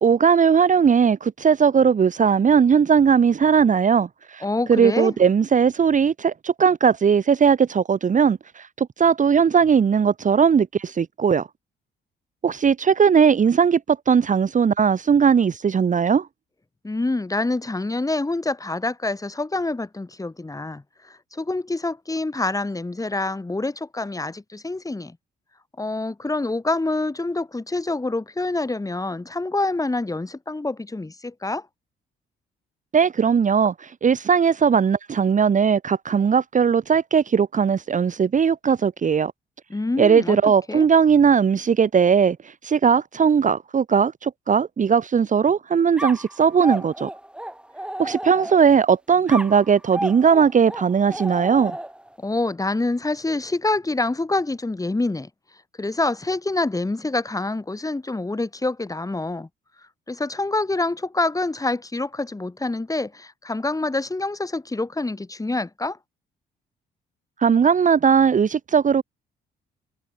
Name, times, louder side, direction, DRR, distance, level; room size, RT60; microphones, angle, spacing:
voice 1, 0.0-11.5 12.4-16.3 32.9-39.3 40.0-47.1 48.0-51.7 67.4-69.0, right 6 dB, 40° right, 1.3 m, -18 dB
voice 2, 4.4-5.2 16.8-25.2 25.8-31.7 39.7-40.4 40.7-40.9 52.2-55.3 55.8-59.5 60.1-66.0, left 2 dB, 15° left, 6.9 m, -26 dB
sound 1, 46.0-48.8 49.3-52.1, right 1 dB, 5° right, 1.5 m, -32 dB
cardioid pair, 90°, 20 cm